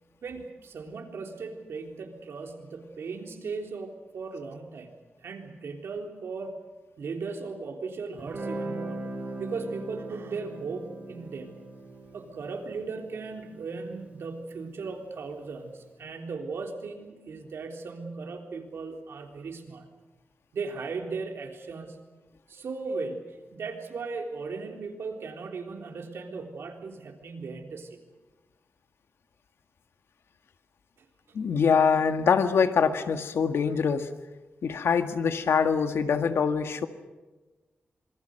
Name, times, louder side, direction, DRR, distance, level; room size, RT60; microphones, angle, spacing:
voice 1, 0.2-4.9 5.2-6.6 7.0-9.1 9.4-11.5 12.1-19.9 20.5-22.0 22.5-28.0 31.3-31.4, right 4 dB, 80° right, 3 dB, 3.7 m, -37 dB
Guitar, 8.2-15.3, right 2 dB, 35° right, 6.6 m, -40 dB
voice 2, 31.3-34.1 34.6-36.9, left 6 dB, 85° left, 8 dB, 1.8 m, -24 dB
26.0 x 24.0 x 6.6 m, 1.2 s
wide cardioid pair, 110°, 4 cm